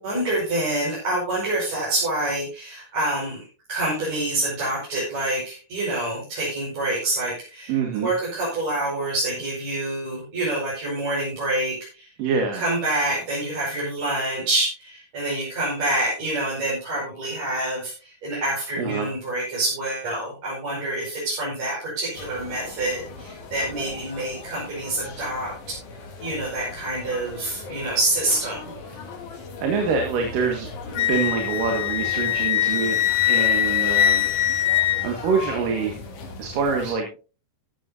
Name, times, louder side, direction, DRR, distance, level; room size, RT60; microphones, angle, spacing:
voice 1, 0.0-12.1 12.5-25.5 26.2-28.7, right 1 dB, 55° right, -7 dB, 6.5 m, -27 dB
voice 2, 7.7-8.1 12.2-12.6 18.8-19.1 29.6-33.0 33.3-34.3 35.0-36.0 36.4-37.1, right 5 dB, 90° right, 3 dB, 3.4 m, -25 dB
sound 1, 22.1-36.9, left 3 dB, 70° left, 3.9 m, -39 dB
Wind instrument woodwind instrument, 30.9-35.5, left 12 dB, 85° left, 1.4 m, -22 dB
15.0 x 13.0 x 2.7 m, 0.34 s
omnidirectional pair, 3.8 m